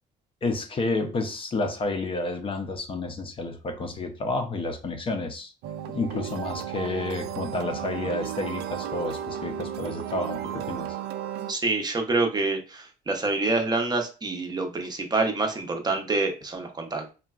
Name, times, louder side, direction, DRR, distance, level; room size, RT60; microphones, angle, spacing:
voice 1, 0.4-5.5 5.9-11.0, left 2 dB, 30° left, 0.5 m, -30 dB
sound 1, 5.6-11.5, right 10 dB, 75° right, 0.4 m, -34 dB
voice 2, 11.5-17.1, right 3 dB, 25° right, 0.6 m, -27 dB
3.8 x 2.2 x 2.3 m
cardioid pair, 110°, 17 cm